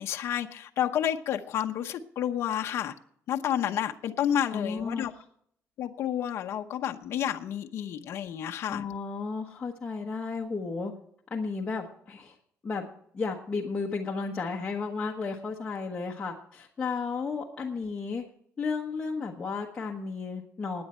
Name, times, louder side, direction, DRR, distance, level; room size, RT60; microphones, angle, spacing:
voice 1, 0.0-2.9 3.3-5.1 5.8-8.8, left 10 dB, 55° left, 4 dB, 0.8 m, -30 dB
voice 2, 4.5-5.2 8.7-10.9 11.3-12.3 12.6-12.9 13.1-18.2 18.6-20.8, left 4 dB, 20° left, -2 dB, 1.2 m, -33 dB
16.0 x 9.6 x 4.4 m, 0.66 s
cardioid pair, 165°, 5 cm